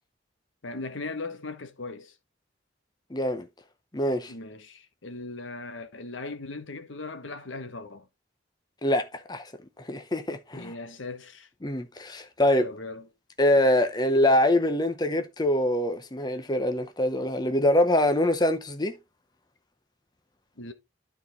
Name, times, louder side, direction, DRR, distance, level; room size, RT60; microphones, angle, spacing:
voice 1, 0.6-2.1 4.3-8.1 10.5-11.5 12.6-13.1 20.6-20.7, left 3 dB, 70° left, 1.3 m, -38 dB
voice 2, 3.1-3.5 3.9-4.3 8.8-9.5 9.8-10.7 11.6-12.7 13.4-18.9, left 1 dB, 20° left, 0.7 m, -24 dB
12.0 x 4.2 x 4.0 m
head